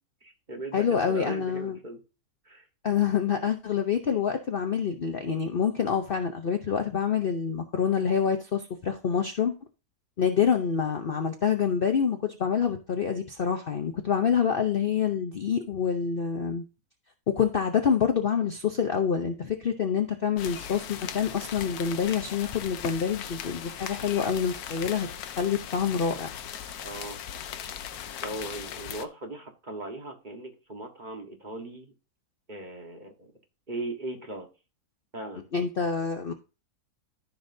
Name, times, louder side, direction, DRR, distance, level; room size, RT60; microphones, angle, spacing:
voice 1, 0.2-2.0 2.4-2.7 26.8-27.2 28.2-31.9 32.5-33.3 33.7-34.5 35.1-35.5, right 2 dB, 30° right, 3 dB, 1.4 m, -38 dB
voice 2, 0.7-1.8 2.8-9.5 10.2-16.6 17.4-25.1 25.4-26.3 35.5-36.3, left 7 dB, 50° left, 5 dB, 0.7 m, -27 dB
sound 1, 20.4-29.1, left 9 dB, 80° left, 1.2 m, -38 dB
14.0 x 5.8 x 2.7 m, 0.31 s
omnidirectional pair, 1.6 m